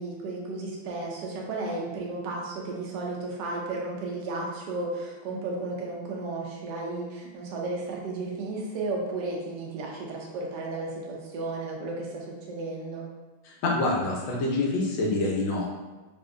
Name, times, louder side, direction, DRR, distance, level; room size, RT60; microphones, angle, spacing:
voice 1, 0.0-13.1, right 2 dB, 75° right, -2 dB, 1.0 m, -33 dB
voice 2, 13.6-15.7, left 2 dB, 70° left, -2 dB, 1.2 m, -26 dB
3.6 x 2.5 x 2.4 m, 1.2 s
omnidirectional pair, 2.3 m